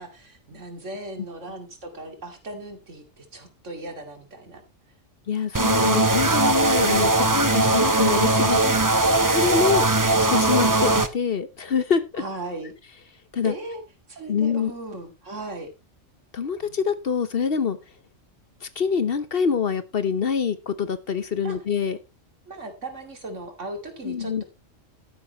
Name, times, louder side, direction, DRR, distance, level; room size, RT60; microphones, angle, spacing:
voice 1, 0.0-4.6 8.6-9.6 12.2-12.7 13.4-13.8 14.1-15.7 16.6-16.9 21.4-21.6 22.5-24.4, right 1 dB, 70° right, 5 dB, 2.7 m, -37 dB
voice 2, 5.3-8.6 9.3-9.8 10.3-12.2 13.3-13.5 14.3-14.7 16.3-17.8 18.6-22.0 24.0-24.4, left 6 dB, 50° left, 13 dB, 1.0 m, -25 dB
sound 1, 5.5-11.1, right 2 dB, 20° right, 0.7 m, -20 dB
12.0 x 10.5 x 3.0 m, 0.25 s
omnidirectional pair, 1.3 m